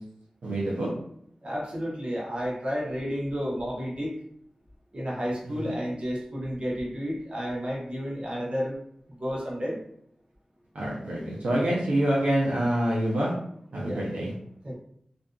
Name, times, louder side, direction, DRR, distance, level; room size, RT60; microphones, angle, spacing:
voice 1, 0.4-0.9 5.5-5.7 10.7-13.3 13.7-14.3, right 1 dB, 90° right, -5 dB, 0.6 m, -26 dB
voice 2, 1.4-4.2 4.9-8.8 9.1-9.8 13.8-14.0 14.6-14.8, equal, 50° right, -3 dB, 0.8 m, -31 dB
2.5 x 2.4 x 2.2 m, 0.69 s
cardioid pair, 50°, 2 cm